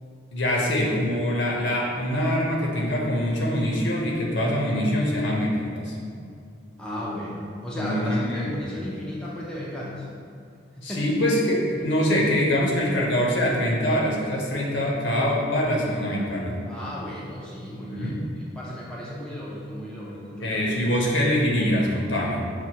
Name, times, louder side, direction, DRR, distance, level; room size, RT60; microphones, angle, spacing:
voice 1, 0.3-5.9 7.8-8.5 10.8-16.5 17.9-18.2 20.4-22.4, equal, 65° left, -3 dB, 0.7 m, -24 dB
voice 2, 6.8-10.1 10.8-11.1 16.7-20.8, equal, 5° left, -7 dB, 0.4 m, -35 dB
5.9 x 2.3 x 2.8 m, 2.3 s
head